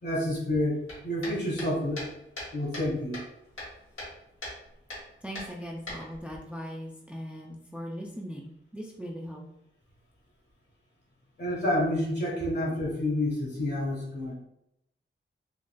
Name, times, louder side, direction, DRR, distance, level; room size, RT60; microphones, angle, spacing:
voice 1, 0.0-2.0 2.5-3.2 11.4-14.3, left 1 dB, 55° left, -3 dB, 1.3 m, -29 dB
sound 1, 0.9-2.9 3.1-4.1 4.4-4.6 4.9-5.0 5.4-6.4, left 1 dB, 80° left, 1.4 m, -39 dB
voice 2, 5.2-9.4, equal, 5° right, -1 dB, 0.3 m, -39 dB
3.9 x 2.4 x 2.2 m, 0.81 s
wide cardioid pair, 110°, 21 cm